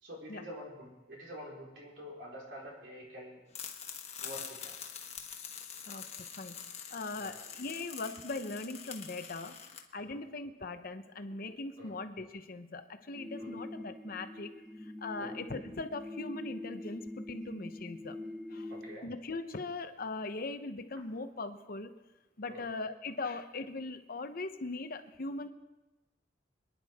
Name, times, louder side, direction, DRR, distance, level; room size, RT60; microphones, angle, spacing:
voice 1, 0.0-3.4 4.2-4.9 7.1-7.4 10.0-10.2 11.8-12.0 13.4-13.5 15.1-15.3 18.7-19.1 22.5-22.6, equal, 75° right, -4 dB, 4.7 m, -47 dB
sound 1, 3.5-9.8, left 7 dB, 35° left, 1.3 m, -45 dB
voice 2, 5.9-6.6 6.9-14.5 14.8-18.2 18.5-18.7 19.0-21.9 22.4-25.5, left 3 dB, 50° left, 8 dB, 0.9 m, -40 dB
sound 2, 13.1-19.0, left 2 dB, 5° right, 0.8 m, -44 dB
27.0 x 10.5 x 3.6 m, 1.1 s
head